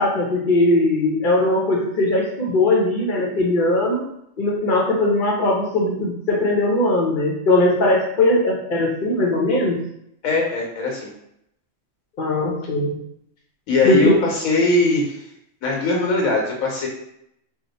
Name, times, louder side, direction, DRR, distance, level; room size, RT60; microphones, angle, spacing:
voice 1, 0.0-4.0 4.4-9.8 12.2-13.0 13.8-14.2, left 2 dB, 50° left, -1 dB, 0.7 m, -19 dB
voice 2, 10.2-11.1 13.7-15.2 15.6-16.9, left 2 dB, 90° left, -1 dB, 1.3 m, -20 dB
2.8 x 2.1 x 3.9 m, 0.75 s
omnidirectional pair, 1.4 m